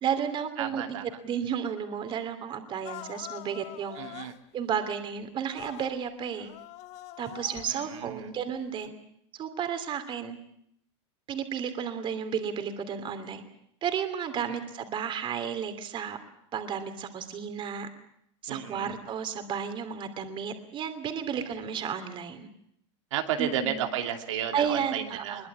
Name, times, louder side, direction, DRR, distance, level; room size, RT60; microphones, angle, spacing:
voice 1, 0.0-1.0 1.2-4.0 4.5-6.5 7.2-8.9 9.3-10.4 11.3-13.4 13.8-16.2 16.5-17.9 18.4-22.5 23.4-23.8 24.5-25.5, right 7 dB, 35° right, 8 dB, 2.9 m, -32 dB
voice 2, 0.6-1.0 4.0-4.3 7.7-8.3 14.5-14.6 18.5-18.9 21.3-21.4 23.1-25.5, right 9 dB, 85° right, 4 dB, 2.7 m, -33 dB
sound 1, 2.8-4.4 5.5-5.9 6.3-8.0 8.7-8.9, left 14 dB, 45° left, 1.1 m, -44 dB
22.5 x 21.0 x 8.6 m, 0.71 s
supercardioid pair, 135°, 16 cm